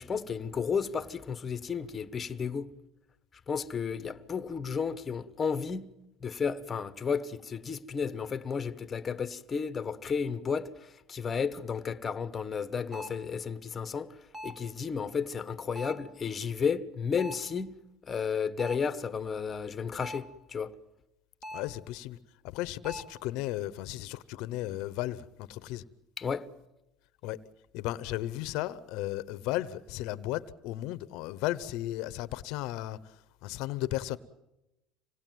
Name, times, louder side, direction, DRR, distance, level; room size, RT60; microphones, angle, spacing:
voice 1, 0.0-2.7 3.5-5.9 6.2-14.2 14.4-17.8 18.1-20.7 26.2-26.5, left 6 dB, 25° left, 1.2 m, -33 dB
sound 1, 12.9-13.3 14.3-14.7 15.8-16.2 17.2-17.5 18.6-19.0 20.0-20.4 21.4-21.8 22.8-23.2, equal, 20° right, 2.0 m, -43 dB
voice 2, 21.5-22.2 22.4-25.8 27.2-27.4 27.7-33.1 33.4-34.2, left 15 dB, 70° left, 0.9 m, -35 dB
26.5 x 19.0 x 9.3 m
supercardioid pair, 120°, 0 cm